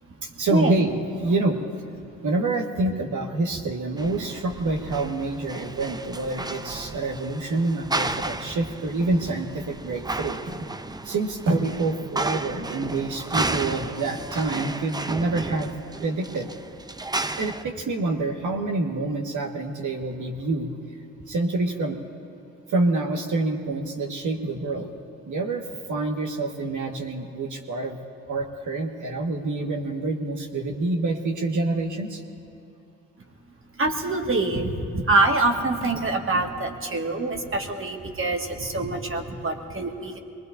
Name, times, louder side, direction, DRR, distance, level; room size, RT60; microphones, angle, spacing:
voice 1, 0.2-1.6 2.2-10.6 11.0-15.7 16.0-16.5 17.4-20.7 21.3-22.0 22.7-24.9 25.3-25.6 25.9-28.0 28.3-32.2, right 2 dB, 65° right, 2 dB, 1.6 m, -27 dB
sound 1, 4.0-17.6, right 2 dB, 10° right, 0.6 m, -33 dB
voice 2, 33.8-40.2, right 2 dB, 40° right, 2 dB, 1.8 m, -25 dB
23.5 x 19.5 x 2.6 m, 2.7 s
supercardioid pair, 45°, 33 cm